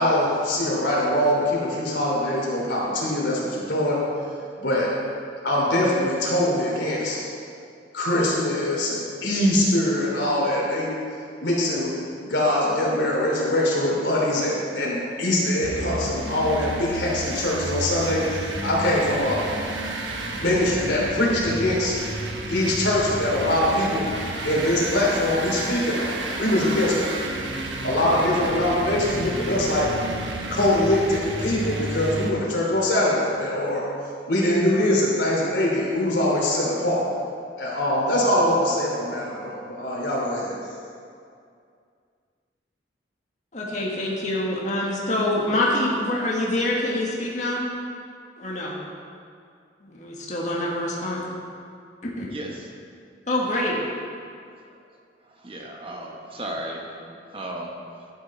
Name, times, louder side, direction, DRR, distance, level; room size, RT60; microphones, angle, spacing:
voice 1, 0.0-4.0 4.6-4.9 5.4-7.2 7.9-10.9 11.4-11.9 12.2-19.4 20.4-22.0 22.5-24.1 24.4-27.1 27.8-29.9 30.5-33.8 34.3-37.0 37.6-40.5, left 1 dB, 80° left, -4 dB, 3.0 m, -23 dB
sound 1, 15.6-32.3, right 2 dB, 90° right, 1.1 m, -31 dB
voice 2, 43.5-47.7 48.4-48.8 49.8-51.2 52.2-52.3 53.3-53.8, left 1 dB, 40° left, -3 dB, 1.6 m, -25 dB
voice 3, 52.3-52.7 54.7-54.8 55.3-57.7, right 1 dB, 30° right, 0 dB, 1.1 m, -35 dB
12.0 x 8.7 x 4.3 m, 2.3 s
head